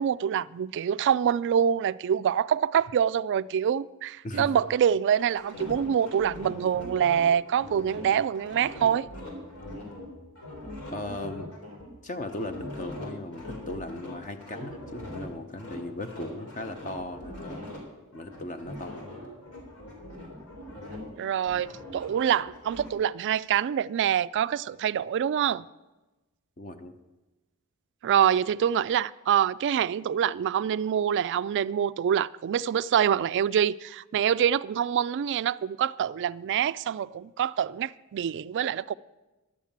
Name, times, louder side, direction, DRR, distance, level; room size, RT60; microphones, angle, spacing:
voice 1, 0.0-9.1 21.2-25.6 28.0-38.9, right 9 dB, 55° right, 0.3 m, -25 dB
sound 1, 5.2-10.1 10.4-15.3 15.6-17.8 18.1-21.1 21.4-22.9, left 1 dB, 80° left, 3.7 m, -42 dB
voice 2, 10.9-11.5 12.0-17.8 18.1-19.1 26.6-27.0, left 2 dB, 35° left, 0.7 m, -37 dB
11.5 x 7.3 x 8.6 m
head